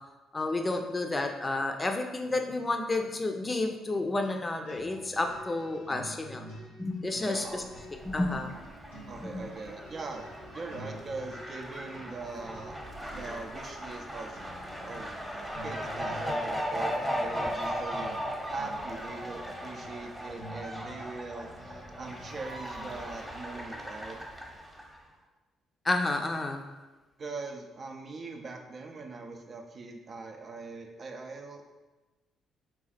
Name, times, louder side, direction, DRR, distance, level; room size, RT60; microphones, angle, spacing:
voice 1, 0.3-6.5 6.8-7.6 8.0-8.5 9.2-9.5 25.8-26.6, left 2 dB, 25° left, 4 dB, 0.5 m, -30 dB
sound 1, 4.6-23.2, equal, 90° left, 0.8 m, -49 dB
voice 2, 7.2-7.7 9.1-10.3 10.5-12.8 13.1-14.4 14.9-18.1 18.5-24.2 27.2-31.6, right 3 dB, 45° right, 3 dB, 0.6 m, -41 dB
Fowl, 7.6-25.0, equal, 10° right, 1.0 m, -38 dB
3.9 x 2.4 x 4.1 m, 1.1 s
hypercardioid pair, 45°, 0 cm